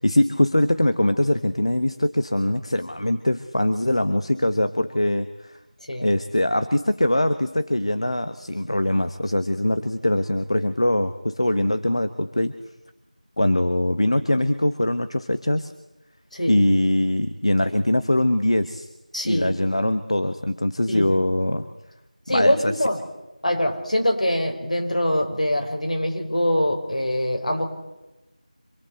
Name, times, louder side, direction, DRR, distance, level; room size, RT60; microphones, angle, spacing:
voice 1, 0.0-5.6 6.0-12.5 13.4-15.7 16.5-18.9 19.2-21.7 22.3-22.7, left 1 dB, 50° left, 10 dB, 1.2 m, -22 dB
voice 2, 19.1-19.5 20.9-21.1 22.3-23.0 23.4-27.7, left 1 dB, 65° left, 3 dB, 5.5 m, -23 dB
26.5 x 22.0 x 8.0 m, 1.0 s
figure-of-eight pair, 180°, 4 cm